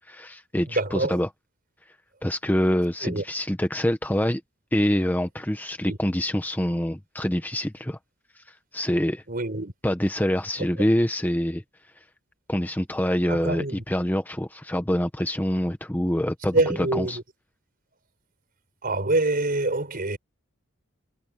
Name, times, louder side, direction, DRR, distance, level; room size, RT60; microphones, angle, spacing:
voice 1, 0.1-1.3 2.2-4.4 4.7-8.0 8.7-9.2 9.8-11.6 12.5-17.2, equal, 10° left, 1.0 m, -25 dB
voice 2, 0.7-1.2 3.0-3.2 5.8-6.0 9.3-9.7 13.3-13.8 16.5-17.2 18.8-20.2, right 2 dB, 45° right, 5.2 m, -25 dB
head